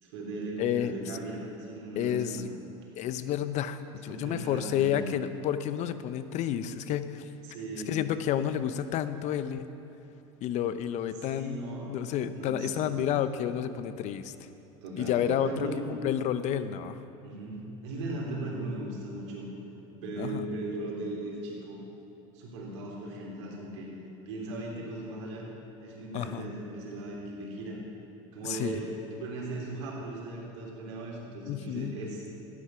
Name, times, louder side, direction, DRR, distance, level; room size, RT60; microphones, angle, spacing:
voice 1, 0.0-2.4 4.1-5.1 7.4-8.0 11.2-13.1 14.8-15.8 17.1-19.5 20.0-21.8 22.3-23.9 24.3-25.5 25.8-27.8 28.3-32.3, right 2 dB, 85° right, -3 dB, 3.5 m, -38 dB
voice 2, 0.6-0.9 2.0-2.5 3.0-7.3 7.9-9.7 10.4-11.6 11.9-14.3 15.0-17.0 20.2-20.5 26.1-26.5 28.4-28.8 31.5-32.0, left 10 dB, 50° left, 12 dB, 0.7 m, -30 dB
14.0 x 9.9 x 5.8 m, 3.0 s
supercardioid pair, 110°, 15 cm